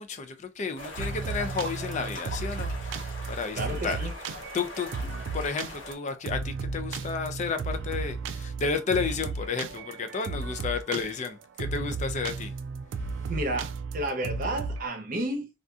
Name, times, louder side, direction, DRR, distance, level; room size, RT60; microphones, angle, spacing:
voice 1, 0.0-4.1 4.5-4.9 5.3-12.5, left 5 dB, 35° left, 0.3 m, -32 dB
sound 1, 0.8-5.9, left 1 dB, 75° left, 1.2 m, -41 dB
sound 2, 1.0-14.9, right 4 dB, 65° right, 0.3 m, -34 dB
voice 2, 3.6-4.1 13.3-15.5, right 1 dB, 45° right, 0.7 m, -31 dB
2.6 x 2.4 x 2.3 m
head